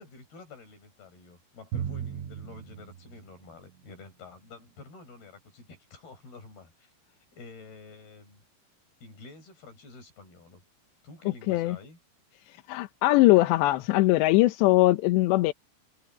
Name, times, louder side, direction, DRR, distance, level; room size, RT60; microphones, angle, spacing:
voice 1, 0.0-8.4 9.0-10.6 11.0-12.0 12.5-12.6, left 3 dB, 55° left, 8.5 m, -49 dB
Drum, 1.7-4.1, right 9 dB, 85° right, 5.4 m, -37 dB
voice 2, 12.7-15.5, left 18 dB, 75° left, 2.9 m, -21 dB
omnidirectional pair, 5.4 m